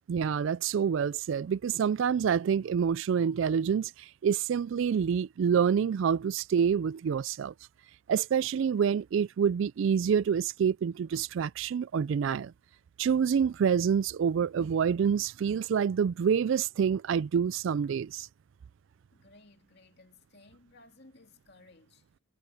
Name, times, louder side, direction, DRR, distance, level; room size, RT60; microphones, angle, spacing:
voice 1, 0.1-7.5 8.1-12.5 13.0-18.3, right 7 dB, 60° right, 0.3 m, -27 dB
voice 2, 19.1-22.1, left 2 dB, 50° left, 2.5 m, -58 dB
head